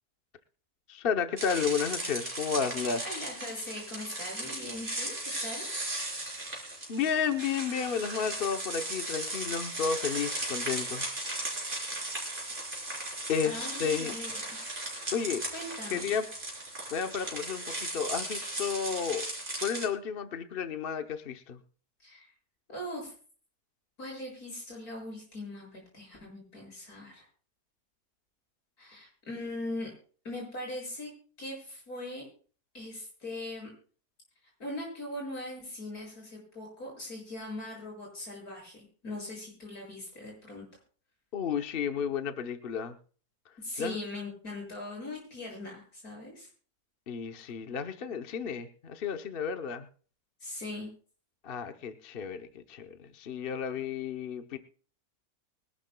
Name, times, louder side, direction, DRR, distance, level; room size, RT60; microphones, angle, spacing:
voice 1, 0.9-3.3 6.9-11.1 13.3-14.1 15.1-15.4 15.9-16.3 16.9-19.3 19.6-21.6 41.3-42.9 43.8-44.0 47.1-49.9 51.4-54.6, left 6 dB, 45° left, 8 dB, 0.9 m, -32 dB
sound 1, 1.4-19.9, right 1 dB, 30° right, 4.3 m, -37 dB
voice 2, 3.0-5.7 13.4-14.4 15.5-16.1 22.0-22.3 22.7-23.1 24.0-27.3 28.8-29.9 30.2-31.1 31.4-32.3 32.7-33.7 34.6-40.6 43.6-46.5 50.4-50.9, left 1 dB, 65° left, 0 dB, 7.3 m, -40 dB
23.0 x 12.0 x 2.2 m, 0.41 s
omnidirectional pair, 1.7 m